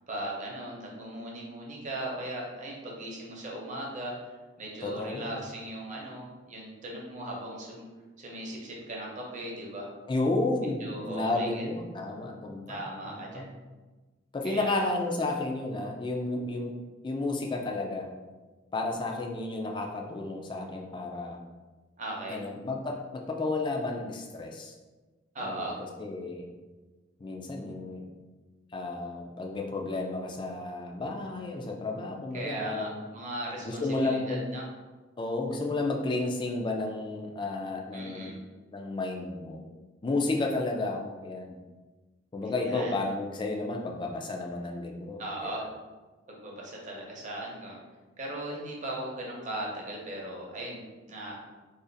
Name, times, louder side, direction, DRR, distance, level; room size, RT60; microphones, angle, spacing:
voice 1, 0.1-4.1 4.6-7.9 8.2-9.9 10.8-11.7 12.7-13.5 14.4-14.8 22.0-22.4 25.3-25.8 32.3-34.6 37.9-38.4 42.4-43.0 45.2-45.7 46.3-47.8 48.2-51.4, right 1 dB, 40° right, -2 dB, 0.7 m, -38 dB
voice 2, 4.8-5.4 10.1-13.5 14.3-16.7 17.0-18.1 18.7-21.4 22.3-24.7 25.4-25.7 26.0-26.5 27.2-28.1 28.7-33.0 33.6-34.4 35.2-38.3 38.7-39.6 40.0-41.6 42.3-45.7, left 2 dB, 25° left, 1 dB, 0.4 m, -32 dB
2.5 x 2.4 x 3.9 m, 1.2 s
head